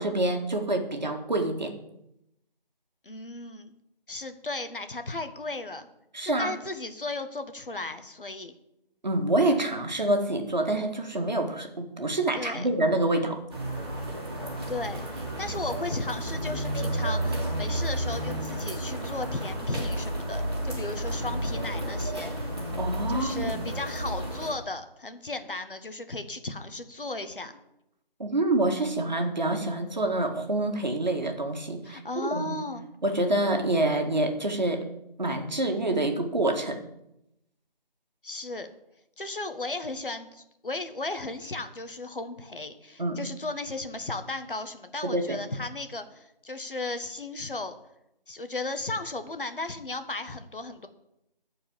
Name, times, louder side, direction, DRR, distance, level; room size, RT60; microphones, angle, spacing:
voice 1, 0.0-1.7 6.1-6.5 9.0-13.4 22.8-23.7 28.2-32.6 33.0-34.8 35.2-36.8 43.0-43.2 45.0-45.4, right 2 dB, 50° right, 4 dB, 1.8 m, -27 dB
voice 2, 3.0-3.7 4.1-5.9 6.2-8.5 12.3-12.7 14.7-22.4 23.1-27.5 31.8-32.9 38.2-38.7 39.2-47.7 48.3-50.9, left 2 dB, 65° left, 8 dB, 1.4 m, -35 dB
sound 1, 13.5-24.5, right 1 dB, 25° right, 2.2 m, -32 dB
14.0 x 4.8 x 7.3 m, 0.84 s
figure-of-eight pair, 170°, 29 cm